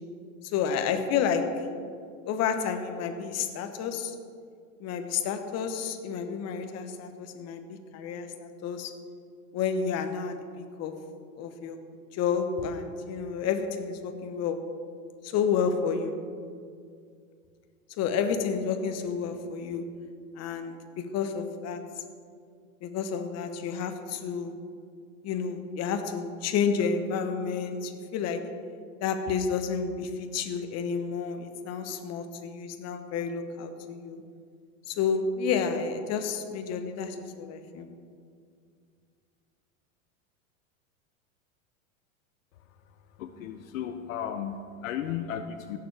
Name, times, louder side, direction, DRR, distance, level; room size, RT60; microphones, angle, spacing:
voice 1, 0.5-1.4 2.2-4.2 4.8-8.9 9.5-10.9 11.4-11.8 12.1-14.6 15.2-16.2 18.0-19.8 20.4-21.8 22.8-24.6 25.2-28.4 29.0-34.2 34.9-37.9, left 6 dB, 40° left, 7 dB, 1.1 m, -30 dB
voice 2, 43.1-45.8, left 9 dB, 75° left, 8 dB, 0.7 m, -35 dB
16.0 x 7.0 x 3.4 m, 2.2 s
hypercardioid pair, 110°, 40 cm